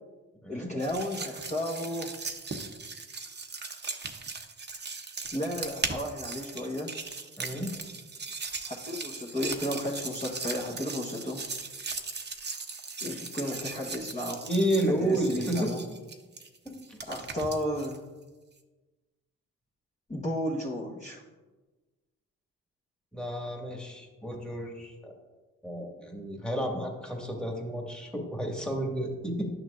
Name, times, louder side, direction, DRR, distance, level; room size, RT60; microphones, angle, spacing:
voice 1, 0.5-2.2 5.3-6.9 8.6-11.4 13.0-14.4 15.0-15.8 17.1-18.0 20.1-21.2, left 1 dB, 20° left, -4 dB, 1.3 m, -33 dB
sound 1, 0.8-18.0, right 4 dB, 30° right, 0.9 m, -38 dB
voice 2, 7.4-7.7 14.4-15.7 16.7-17.0 23.1-25.2 25.6-29.5, right 1 dB, 5° left, 0 dB, 1.8 m, -31 dB
10.5 x 6.3 x 2.6 m, 1.2 s
supercardioid pair, 55°, 33 cm